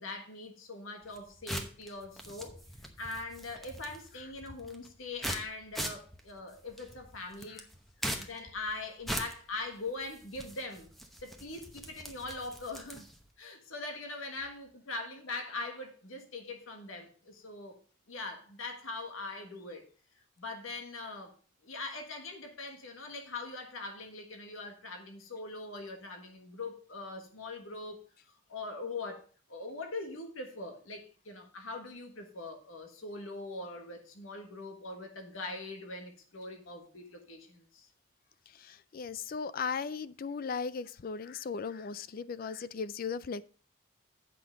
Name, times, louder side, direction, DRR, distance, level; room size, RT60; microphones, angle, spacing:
voice 1, 0.0-2.6 3.0-7.6 8.1-10.9 11.2-13.0 13.4-17.8 18.1-19.8 20.4-21.3 21.6-28.0 28.5-37.9, left 3 dB, 90° left, 1.6 m, -42 dB
sound 1, 1.0-13.3, equal, ahead, 0.9 m, -42 dB
voice 2, 38.5-43.4, left 5 dB, 45° left, 0.4 m, -37 dB
8.4 x 5.8 x 5.1 m
head